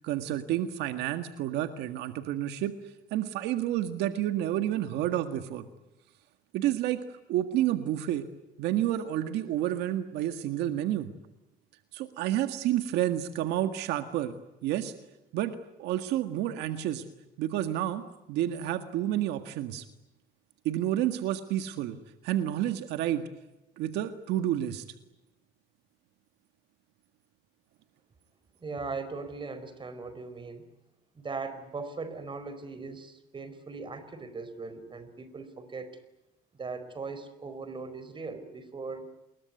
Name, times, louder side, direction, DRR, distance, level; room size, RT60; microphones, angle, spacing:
voice 1, 0.0-2.7 3.1-5.7 6.5-7.0 7.3-8.3 8.6-11.1 11.9-14.3 14.6-14.9 15.3-17.1 17.4-19.9 20.7-22.0 22.2-23.3 23.8-24.8, right 12 dB, 90° right, 9 dB, 1.8 m, -30 dB
voice 2, 28.6-30.6 31.1-35.9 36.5-39.1, right 4 dB, 30° right, 12 dB, 4.7 m, -39 dB
28.0 x 22.0 x 9.6 m, 0.97 s
cardioid pair, 110°, 17 cm